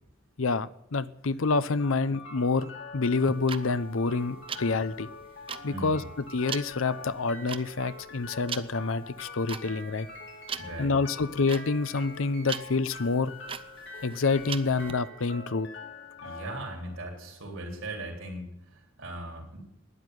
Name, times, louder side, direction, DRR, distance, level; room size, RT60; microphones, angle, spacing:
voice 1, 0.4-2.7 2.9-5.1 5.6-6.0 6.3-10.1 10.8-13.3 14.0-15.7, left 4 dB, 80° left, 15 dB, 0.7 m, -27 dB
sound 1, 1.8-17.8, left 3 dB, 60° left, 2.6 m, -45 dB
sound 2, 3.2-14.9, right 6 dB, 25° right, 0.6 m, -40 dB
voice 2, 5.7-6.1 10.6-11.1 16.2-19.6, right 1 dB, 75° right, -1 dB, 3.8 m, -39 dB
12.5 x 10.5 x 9.4 m, 0.78 s
head